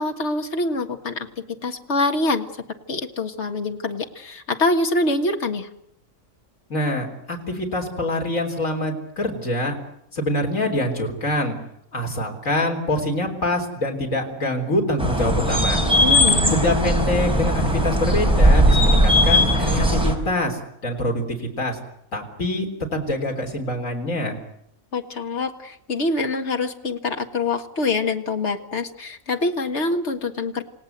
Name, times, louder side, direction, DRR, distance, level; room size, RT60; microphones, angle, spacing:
voice 1, 0.0-2.5 2.9-5.7 16.0-16.6 24.9-30.6, left 2 dB, 55° left, 5 dB, 2.0 m, -25 dB
voice 2, 6.7-9.8 10.1-11.6 11.9-15.8 16.5-21.8 22.1-24.4, left 1 dB, 75° left, 1 dB, 4.2 m, -25 dB
sound 1, 15.0-20.2, equal, 5° right, 4.2 m, -18 dB
28.5 x 17.5 x 8.1 m, 0.74 s
omnidirectional pair, 1.4 m